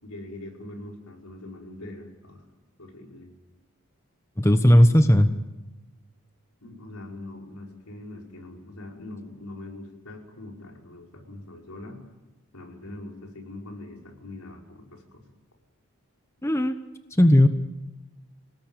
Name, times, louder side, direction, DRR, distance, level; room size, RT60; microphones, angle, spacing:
voice 1, 0.0-2.4 2.8-3.3 6.6-12.0 12.5-15.2, left 2 dB, 90° left, 0 dB, 5.3 m, -42 dB
voice 2, 4.4-5.3 16.4-16.8 17.2-17.5, equal, 10° left, 8 dB, 1.0 m, -16 dB
27.0 x 19.0 x 9.1 m, 1.1 s
head